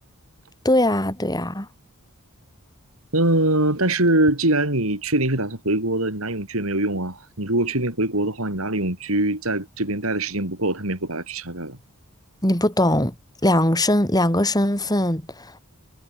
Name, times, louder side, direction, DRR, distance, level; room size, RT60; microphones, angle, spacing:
voice 1, 0.6-1.7 12.4-13.1 13.4-15.6, left 1 dB, 15° left, 7.5 m, -20 dB
voice 2, 3.1-11.8, right 1 dB, 70° right, 5.4 m, -23 dB
head